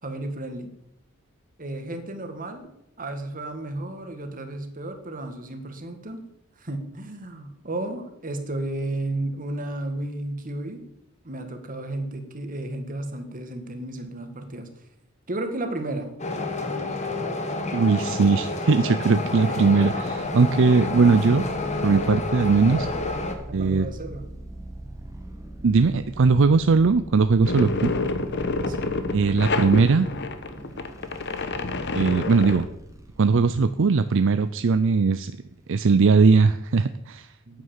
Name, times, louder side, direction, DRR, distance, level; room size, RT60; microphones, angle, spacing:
voice 1, 0.0-0.7 1.6-2.7 3.0-6.2 6.6-10.8 11.2-14.7 15.3-16.1 19.4-19.8 23.5-24.3 28.7-29.0 37.5-37.6, right 2 dB, 40° right, 6 dB, 1.8 m, -33 dB
sound 1, 16.2-23.3, left 2 dB, 35° left, 1.7 m, -29 dB
voice 2, 17.7-21.4 21.8-22.9 23.5-23.9 25.6-27.9 29.1-30.1 31.9-32.7 33.2-35.3 35.7-37.3, right 4 dB, 65° right, 11 dB, 0.5 m, -19 dB
Im in hell help me, 20.3-36.1, right 1 dB, 15° right, 1.4 m, -42 dB
sound 2, 27.4-32.6, left 3 dB, 60° left, 1.2 m, -28 dB
9.6 x 9.4 x 7.2 m, 0.78 s
head